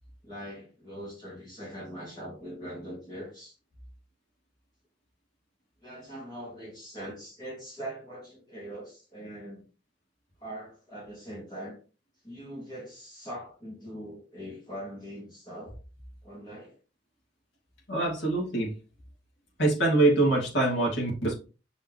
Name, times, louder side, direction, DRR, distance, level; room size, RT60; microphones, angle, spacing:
voice 1, 0.2-3.6 5.8-9.6 10.4-11.8 12.2-15.8 16.2-16.8, equal, 25° left, -5 dB, 2.5 m, -42 dB
voice 2, 17.9-18.7 19.6-21.3, right 2 dB, 85° left, -2 dB, 2.5 m, -24 dB
6.6 x 5.5 x 3.2 m, 0.34 s
head